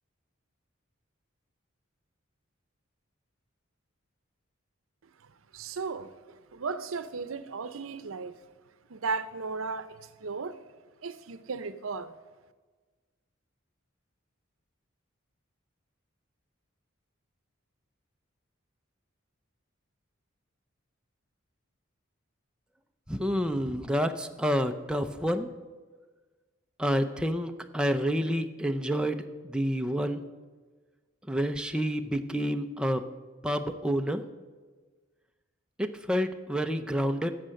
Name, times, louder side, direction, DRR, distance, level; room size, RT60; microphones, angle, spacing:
voice 1, 5.5-8.4 8.9-10.6 11.0-12.1, right 4 dB, 80° right, 13 dB, 0.7 m, -35 dB
voice 2, 23.1-25.5 26.8-30.2 31.3-33.0 33.4-34.2 35.8-37.3, equal, 5° right, 5 dB, 0.5 m, -29 dB
12.0 x 7.7 x 6.4 m, 1.4 s
head